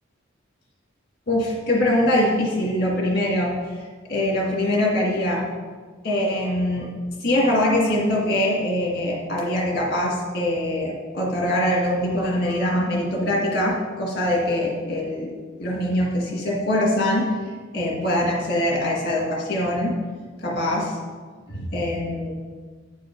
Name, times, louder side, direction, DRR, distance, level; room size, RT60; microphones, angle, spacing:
voice 1, 1.3-3.5 4.1-5.4 6.0-6.9 7.2-15.3 15.6-17.3 17.7-20.0 20.4-20.9 21.5-22.3, left 1 dB, 50° left, -2 dB, 2.1 m, -23 dB
8.7 x 5.5 x 5.3 m, 1.5 s
head